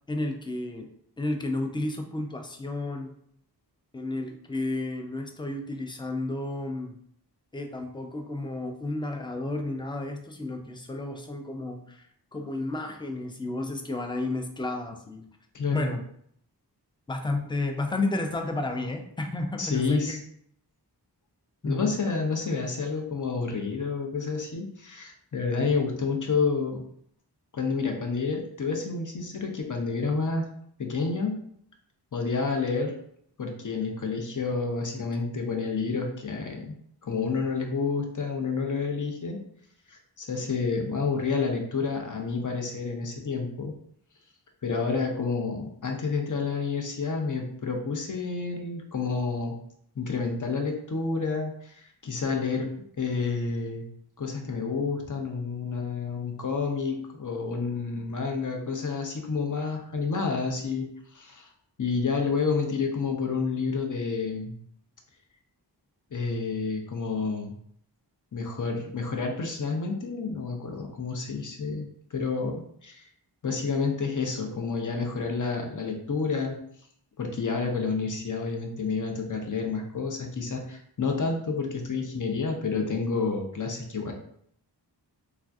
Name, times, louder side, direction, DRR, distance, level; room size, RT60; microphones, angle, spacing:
voice 1, 0.1-0.9 1.2-3.1 3.9-7.0 7.5-15.2 15.7-16.0 17.1-20.2 21.6-21.9, left 2 dB, 10° left, 4 dB, 0.4 m, -32 dB
voice 2, 15.5-15.9 19.6-20.2 21.6-26.8 27.5-30.5 30.8-31.4 32.1-32.9 33.4-36.7 37.0-39.4 39.9-43.7 44.6-49.6 50.0-52.7 53.0-53.9 54.2-61.5 61.8-64.5 66.1-67.5 68.3-73.1 73.4-76.6 77.2-84.1, left 4 dB, 45° left, 2 dB, 0.6 m, -29 dB
3.3 x 2.4 x 2.3 m, 0.67 s
wide cardioid pair, 55°, 41 cm